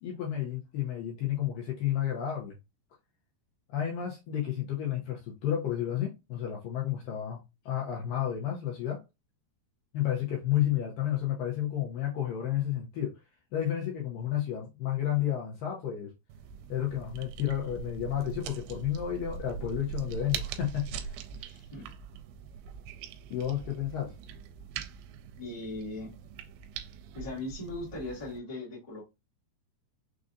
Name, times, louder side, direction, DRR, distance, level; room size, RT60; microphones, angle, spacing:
voice 1, 0.0-2.6 3.7-9.0 9.9-13.2 13.5-16.1 16.7-21.2 23.3-24.1, left 11 dB, 80° left, 2.1 m, -31 dB
sound 1, 16.3-28.4, right 7 dB, 85° right, 2.5 m, -42 dB
voice 2, 21.3-21.9 25.4-26.1 27.1-29.0, left 2 dB, 35° left, 0.5 m, -39 dB
6.1 x 2.5 x 2.6 m
omnidirectional pair, 4.7 m